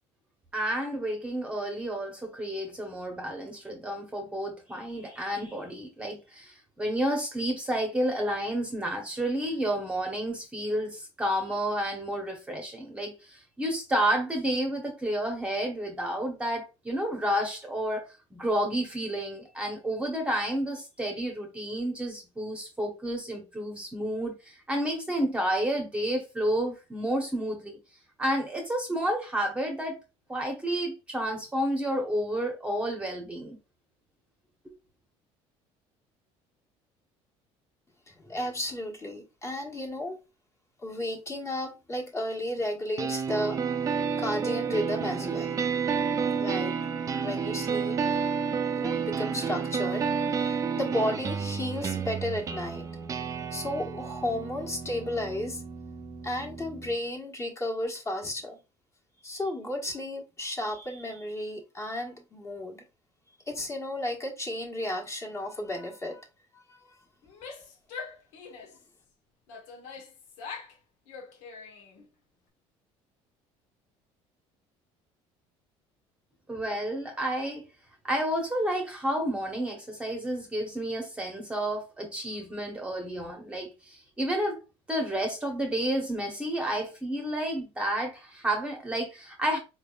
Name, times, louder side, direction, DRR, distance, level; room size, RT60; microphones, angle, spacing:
voice 1, 0.5-27.8 28.2-30.0 30.3-33.6 76.5-77.6 78.0-84.6 84.9-89.6, right 1 dB, 10° right, 0.9 m, -30 dB
voice 2, 38.1-40.2 40.8-45.6 46.3-46.7 47.2-48.0 48.8-52.9 53.5-55.6 56.2-58.6 59.2-62.8 63.5-66.3 66.5-67.0, left 1 dB, 25° left, 1.4 m, -33 dB
sound 1, 43.0-57.0, right 6 dB, 30° right, 0.5 m, -31 dB
Female speech woman speaking / Yell, 67.2-68.9 69.5-70.8 71.1-72.0, left 5 dB, 90° left, 1.1 m, -43 dB
4.6 x 3.4 x 2.4 m
cardioid pair, 135°, 12 cm